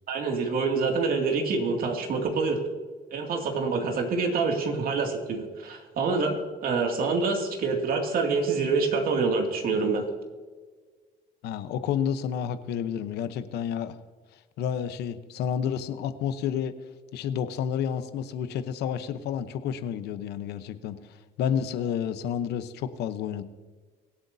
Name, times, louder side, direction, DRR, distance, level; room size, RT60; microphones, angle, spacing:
voice 1, 0.1-2.6 3.1-10.0, right 4 dB, 60° right, 2 dB, 2.4 m, -26 dB
voice 2, 11.4-14.0 14.6-16.7 17.1-20.9 21.4-23.4, left 8 dB, 80° left, 11 dB, 0.9 m, -30 dB
24.0 x 8.2 x 2.7 m, 1.4 s
cardioid pair, 110°, 17 cm